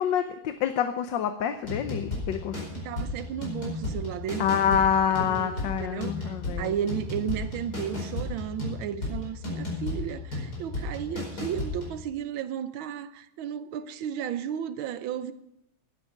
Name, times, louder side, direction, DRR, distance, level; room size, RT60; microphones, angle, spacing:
voice 1, 0.0-2.6 4.4-6.8, left 8 dB, 70° left, 1.4 m, -27 dB
sound 1, 1.6-12.0, left 2 dB, 50° left, 5.3 m, -34 dB
voice 2, 2.8-4.4 4.7-4.8 5.2-5.5 5.9-6.1 6.6-15.3, right 9 dB, 85° right, 1.6 m, -33 dB
13.0 x 12.0 x 6.4 m
omnidirectional pair, 2.2 m